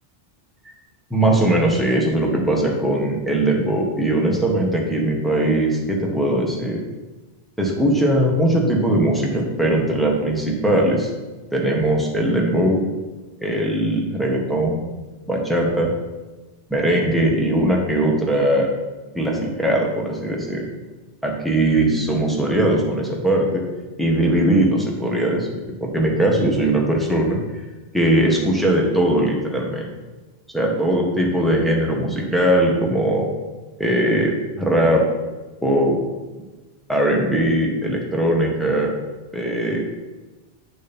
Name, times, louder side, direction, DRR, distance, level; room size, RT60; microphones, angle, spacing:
voice 1, 1.1-6.8 7.6-11.1 11.5-12.8 13.4-14.8 15.3-15.9 16.7-18.7 19.1-20.6 21.2-23.6 24.0-27.6 27.9-29.9 30.5-33.3 33.8-35.0 35.6-36.0 36.9-38.9 39.3-39.8, right 1 dB, ahead, -2 dB, 1.5 m, -20 dB
8.7 x 6.3 x 4.5 m, 1.2 s
omnidirectional pair, 1.1 m